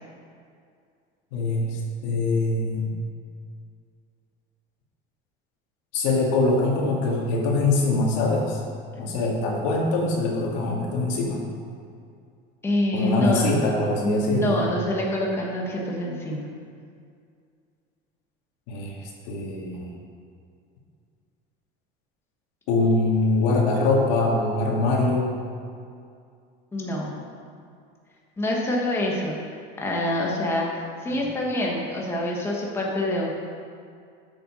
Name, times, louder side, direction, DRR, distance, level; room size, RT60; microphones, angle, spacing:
voice 1, 1.3-2.9 5.9-8.6 9.0-11.4 12.9-14.7 18.7-18.9 19.2-19.9 22.7-25.3 31.1-31.2, left 2 dB, 85° left, -1 dB, 2.1 m, -23 dB
voice 2, 12.6-13.5 14.0-16.5 26.7-27.1 28.4-29.4 29.8-33.3, left 1 dB, 10° left, -3 dB, 1.3 m, -26 dB
7.7 x 7.0 x 6.3 m, 2.3 s
cardioid pair, 165°, 20 cm